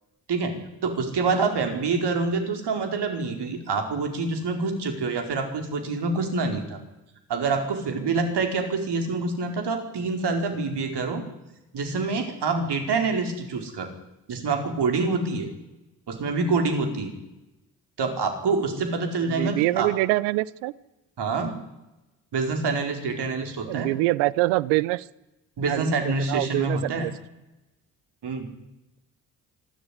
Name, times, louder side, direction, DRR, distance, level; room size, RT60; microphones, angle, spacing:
voice 1, 0.3-6.8 7.3-11.2 11.7-13.9 14.3-15.5 16.1-17.1 18.0-19.9 21.2-21.6 22.3-23.9 25.6-27.1 28.2-28.5, right 4 dB, 60° right, 5 dB, 4.9 m, -26 dB
voice 2, 19.3-20.7 23.7-25.0 25.7-27.1, right 19 dB, 80° right, 21 dB, 0.8 m, -25 dB
26.0 x 13.0 x 9.8 m, 0.99 s
hypercardioid pair, 40°, 44 cm